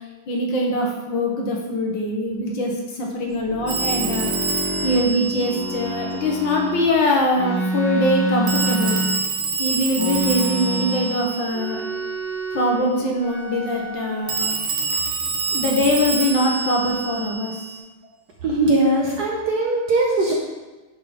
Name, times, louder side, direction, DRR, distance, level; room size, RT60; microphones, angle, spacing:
voice 1, 0.3-4.5 4.8-9.0 9.6-11.8 12.5-14.5 15.5-17.6, left 1 dB, 65° left, 0 dB, 1.6 m, -22 dB
sound 1, 3.3-6.9 7.3-9.5 9.9-11.2 11.5-12.8 13.2-14.3 14.9-15.8 16.0-17.2, right 1 dB, 40° left, 1.0 m, -29 dB
Telephone, 3.7-6.3 8.5-12.1 14.3-17.8, right 4 dB, 85° right, 1.9 m, -27 dB
voice 2, 18.4-20.3, right 2 dB, 60° right, -2 dB, 1.1 m, -20 dB
9.8 x 3.6 x 4.1 m, 1.2 s
omnidirectional pair, 2.4 m